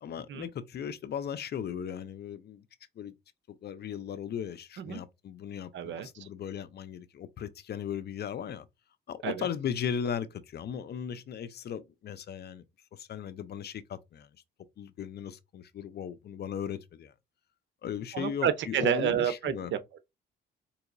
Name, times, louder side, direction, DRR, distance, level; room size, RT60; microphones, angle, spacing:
voice 1, 0.0-2.6 3.0-3.1 3.6-8.7 9.1-12.6 12.9-14.3 14.8-17.1 17.8-19.7, left 8 dB, 55° left, 0.6 m, -37 dB
voice 2, 5.7-6.3 9.2-9.5 18.1-20.0, right 9 dB, 70° right, 0.7 m, -30 dB
4.6 x 2.8 x 2.6 m
cardioid pair, 90°, 20 cm